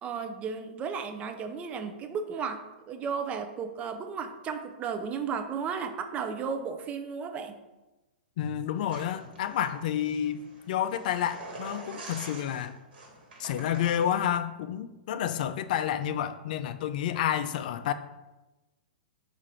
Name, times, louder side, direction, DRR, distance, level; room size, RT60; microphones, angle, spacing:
voice 1, 0.0-7.6, right 6 dB, 25° right, 7 dB, 0.4 m, -34 dB
voice 2, 8.4-12.7 13.4-17.9, left 10 dB, 55° left, 11 dB, 0.3 m, -30 dB
sound 1, 8.9-14.4, right 2 dB, 70° right, 1.3 m, -46 dB
4.7 x 2.5 x 4.3 m, 1.1 s
hypercardioid pair, 130°, 5 cm